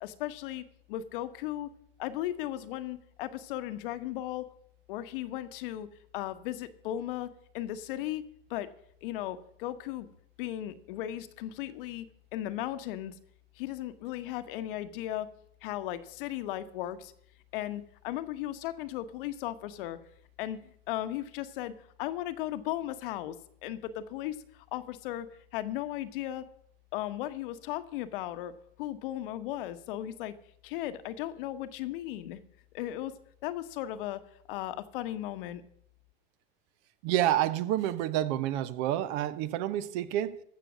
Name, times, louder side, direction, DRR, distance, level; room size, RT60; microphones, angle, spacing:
voice 1, 0.0-1.7 2.0-4.4 4.9-5.9 6.1-8.2 8.5-8.7 9.0-10.1 10.4-12.0 12.3-13.1 13.6-15.3 15.6-17.1 17.5-20.0 20.4-23.4 23.6-26.5 26.9-30.3 30.6-32.4 32.7-33.1 33.4-34.2 34.5-35.6, left 13 dB, 65° left, 11 dB, 1.1 m, -36 dB
voice 2, 37.0-40.4, right 12 dB, 55° right, 15 dB, 0.9 m, -29 dB
14.5 x 6.8 x 6.2 m, 0.67 s
hypercardioid pair, 120°, 29 cm